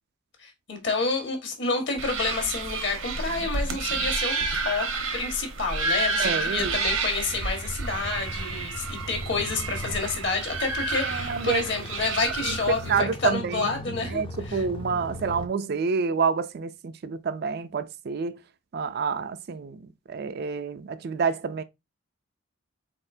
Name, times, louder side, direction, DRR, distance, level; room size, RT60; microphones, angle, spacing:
voice 1, 0.4-4.9 5.1-14.2 14.5-14.6, left 4 dB, 60° left, 1.6 m, -29 dB
sound 1, 2.0-13.0, right 3 dB, 85° right, 1.1 m, -30 dB
voice 2, 6.2-6.8 11.0-11.7 12.4-18.4 18.7-21.6, right 5 dB, 50° right, 0.4 m, -28 dB
sound 2, 7.3-15.5, equal, 25° left, 0.5 m, -39 dB
4.2 x 4.2 x 2.6 m
head